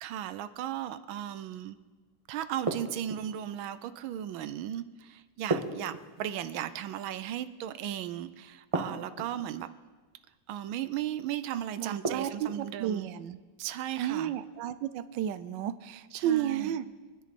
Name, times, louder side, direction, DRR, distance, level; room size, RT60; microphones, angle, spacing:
voice 1, 0.0-1.8 2.3-9.7 10.5-13.1 13.6-14.3 16.1-16.8, right 11 dB, 90° right, 13 dB, 1.5 m, -36 dB
sound 1, 2.7-3.4 5.5-6.5 8.7-9.5 12.0-12.7, right 2 dB, 20° right, 1.3 m, -34 dB
voice 2, 11.8-13.4 14.0-16.9, right 10 dB, 75° right, 12 dB, 1.3 m, -32 dB
24.5 x 10.5 x 4.2 m, 1.3 s
omnidirectional pair, 2.1 m